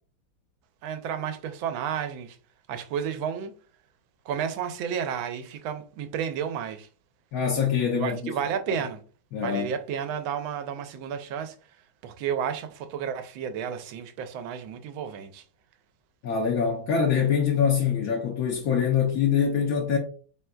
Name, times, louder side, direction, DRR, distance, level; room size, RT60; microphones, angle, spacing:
voice 1, 0.8-2.4 2.7-3.5 4.3-6.9 8.0-9.0 9.4-11.6 12.0-15.4, right 8 dB, 90° right, 1.4 m, -32 dB
voice 2, 7.3-8.3 9.3-9.7 16.2-20.0, left 7 dB, 65° left, 0.9 m, -24 dB
4.3 x 3.8 x 2.2 m
omnidirectional pair, 2.1 m